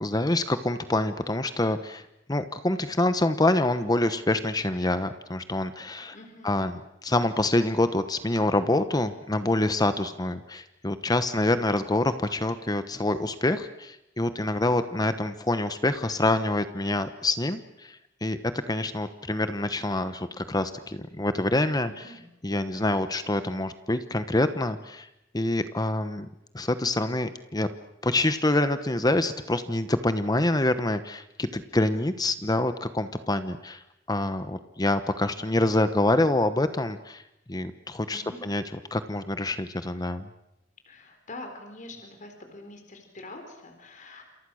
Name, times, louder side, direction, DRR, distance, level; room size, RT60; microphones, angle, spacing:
voice 1, 0.0-2.0 2.3-6.2 6.4-18.4 18.7-21.9 22.4-25.1 25.3-26.3 26.5-27.7 28.0-33.8 34.1-37.2 37.5-38.6 38.9-40.3, left 2 dB, 20° left, 11 dB, 1.0 m, -26 dB
voice 2, 6.1-6.7 21.9-22.3 38.1-38.5 40.9-44.2, left 2 dB, 40° left, 5 dB, 4.3 m, -45 dB
28.5 x 28.0 x 6.4 m, 0.83 s
head